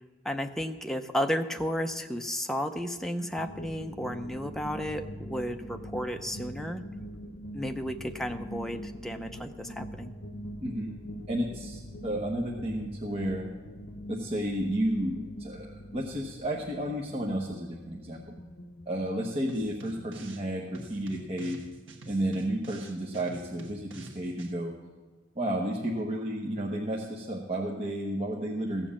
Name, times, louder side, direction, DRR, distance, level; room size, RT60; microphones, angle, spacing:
voice 1, 0.2-6.8 7.5-10.1, equal, ahead, 5 dB, 0.6 m, -33 dB
sound 1, 3.4-20.7, equal, 55° left, 0.7 m, -43 dB
voice 2, 10.6-10.9 11.3-13.5 14.1-18.2 18.9-21.6 22.1-24.7 25.3-28.9, right 1 dB, 30° right, -2 dB, 1.0 m, -32 dB
sound 2, 19.5-20.5 20.7-24.5, right 2 dB, 80° right, 1.3 m, -48 dB
15.0 x 7.4 x 7.2 m, 1.4 s
head